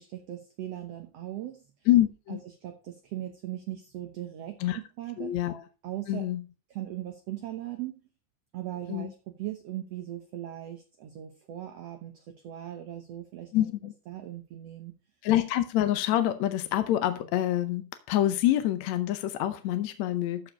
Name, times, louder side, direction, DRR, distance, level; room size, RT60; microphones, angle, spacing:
voice 1, 0.0-1.7 2.3-5.4 5.8-6.3 6.7-7.9 8.5-13.5 14.1-14.9, right 13 dB, 65° right, 5 dB, 1.8 m, -39 dB
voice 2, 1.9-2.4 4.6-4.8 5.2-5.6 6.1-6.4 8.9-9.1 13.5-13.9 15.2-20.5, left 13 dB, 70° left, 10 dB, 1.8 m, -26 dB
13.5 x 4.9 x 5.1 m, 0.33 s
omnidirectional pair, 3.9 m